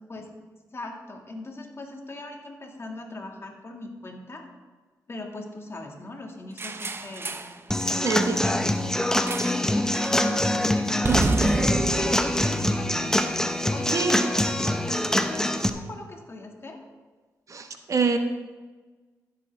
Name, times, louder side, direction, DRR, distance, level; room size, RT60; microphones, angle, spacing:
voice 1, 0.7-4.5 5.1-7.3 7.8-8.9 9.7-11.4 11.6-13.2 13.6-16.8, left 2 dB, 40° left, 2 dB, 2.1 m, -39 dB
sound 1, 6.6-7.6 9.3-9.7 9.9-10.2 11.0-13.4, right 3 dB, 35° right, 0.7 m, -29 dB
Human voice / Acoustic guitar / Drum, 7.7-15.7, left 1 dB, 10° left, 0.9 m, -24 dB
voice 2, 8.0-9.1 11.1-11.2 13.9-14.2 17.5-18.2, right 4 dB, 50° right, 6 dB, 1.3 m, -27 dB
15.0 x 7.7 x 3.5 m, 1.3 s
cardioid pair, 60°, 7 cm